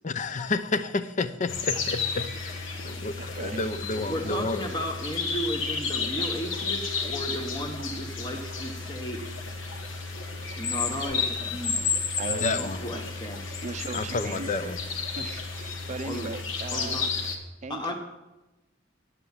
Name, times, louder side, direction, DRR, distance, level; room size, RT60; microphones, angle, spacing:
voice 1, 0.0-4.7 12.3-12.9 13.9-14.8, left 3 dB, 40° left, 12 dB, 0.6 m, -30 dB
sound 1, 1.5-17.4, left 5 dB, 80° left, 1.4 m, -32 dB
voice 2, 3.2-3.6 12.2-12.5 13.6-14.7 15.1-17.0 17.6-17.9, right 3 dB, 35° right, 9 dB, 0.5 m, -37 dB
voice 3, 4.0-9.5 10.6-11.9 12.3-13.4 14.1-14.4 16.1-16.3 16.7-17.1 17.7-17.9, equal, 25° left, 2 dB, 1.0 m, -34 dB
10.0 x 8.2 x 7.2 m, 1.0 s
head